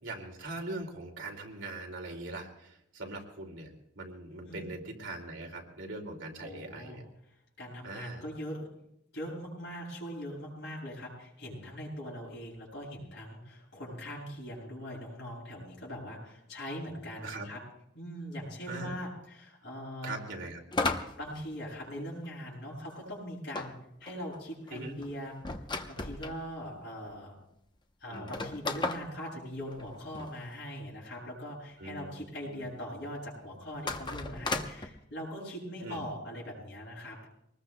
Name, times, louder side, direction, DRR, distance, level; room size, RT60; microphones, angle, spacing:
voice 1, 0.0-7.0 7.8-8.2 17.2-17.5 18.7-18.9 20.0-20.6 24.7-25.0 28.1-28.3 31.8-32.7 35.8-36.0, right 2 dB, 75° right, 0 dB, 2.5 m, -41 dB
voice 2, 6.4-7.0 7.6-8.7 9.1-17.6 17.9-20.2 21.1-23.7 24.0-25.3 25.8-27.3 28.0-37.3, equal, 60° left, -5 dB, 7.8 m, -41 dB
sound 1, 20.7-22.3 23.5-26.4 27.1-27.2 27.4-27.5 28.1-30.3 33.7-34.9, left 3 dB, 25° left, 0.8 m, -35 dB
24.5 x 20.0 x 2.2 m, 0.77 s
head